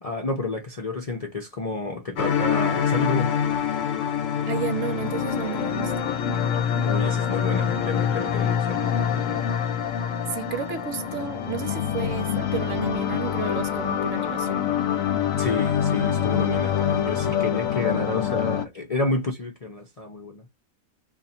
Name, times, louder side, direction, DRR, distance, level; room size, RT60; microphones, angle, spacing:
voice 1, 0.0-3.3 6.8-9.5 15.4-20.5, left 2 dB, 40° left, 0.5 m, -30 dB
sound 1, 2.2-18.7, left 8 dB, 70° left, 0.9 m, -25 dB
voice 2, 4.5-6.1 10.3-14.7, right 8 dB, 65° right, 0.9 m, -32 dB
2.6 x 2.5 x 4.1 m
omnidirectional pair, 1.4 m